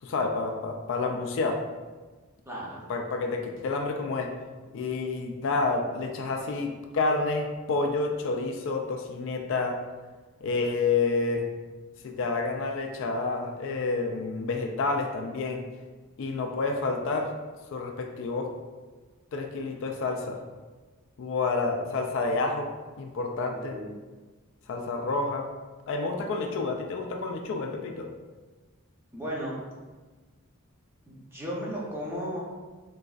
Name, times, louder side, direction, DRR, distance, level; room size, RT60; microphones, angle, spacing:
voice 1, 0.0-1.6 2.9-4.3 4.7-9.8 10.4-11.5 12.0-15.6 16.2-17.3 17.7-18.5 19.3-20.4 21.2-22.7 23.0-23.8 24.7-25.4 25.9-28.1, left 3 dB, 60° left, 3 dB, 0.3 m, -29 dB
voice 2, 2.5-2.8 23.5-23.9 29.1-29.5 31.1-32.4, equal, 10° right, -5 dB, 0.6 m, -35 dB
3.8 x 2.5 x 2.3 m, 1.3 s
head